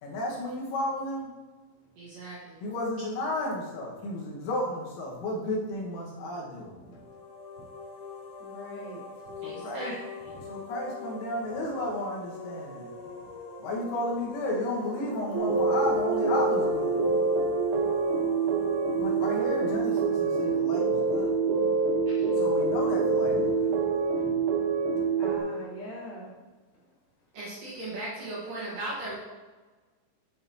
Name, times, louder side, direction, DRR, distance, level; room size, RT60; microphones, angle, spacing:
voice 1, 0.0-1.3 2.6-6.7 9.4-10.0 10.4-12.9 13.6-17.0 19.0-21.4 22.3-23.9, left 1 dB, 85° left, -3 dB, 4.1 m, -33 dB
voice 2, 2.0-2.6 4.0-4.1 9.4-9.9 22.1-22.3 27.3-29.2, right 2 dB, 60° right, -7 dB, 2.5 m, -38 dB
sound 1, 6.8-21.5, left 3 dB, 70° left, 2.3 m, -43 dB
voice 3, 8.4-9.0 10.3-10.4 23.1-23.4 24.1-24.4 25.2-26.4, equal, 45° left, -7 dB, 1.4 m, -43 dB
sound 2, 15.3-25.4, right 4 dB, 85° right, 3.4 m, -26 dB
8.9 x 7.7 x 2.8 m, 1.3 s
omnidirectional pair, 5.6 m